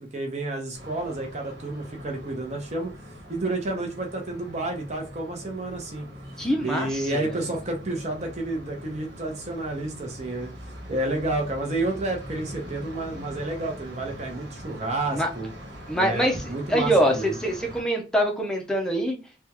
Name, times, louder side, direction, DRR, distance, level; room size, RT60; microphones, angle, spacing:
voice 1, 0.0-2.9 3.3-6.1 6.6-10.5 10.9-15.5 15.9-17.3, right 2 dB, 40° right, 1 dB, 0.8 m, -30 dB
sound 1, 0.7-17.8, equal, 80° right, 1.3 m, -42 dB
voice 2, 6.4-6.9 7.1-7.2 15.1-15.3 15.9-16.4 16.7-19.2, equal, 5° left, 1 dB, 0.6 m, -24 dB
3.4 x 2.3 x 2.9 m, 0.30 s
head